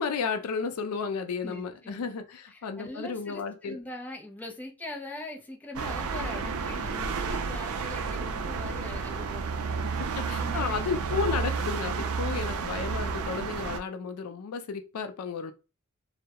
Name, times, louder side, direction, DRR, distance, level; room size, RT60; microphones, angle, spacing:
voice 1, 0.0-3.8 10.1-15.5, left 5 dB, 80° left, 0.4 m, -33 dB
voice 2, 1.4-11.2 12.6-12.8, left 1 dB, 5° left, 0.4 m, -42 dB
sound 1, 5.8-13.8, right 5 dB, 75° right, 0.4 m, -31 dB
2.2 x 2.0 x 2.8 m
head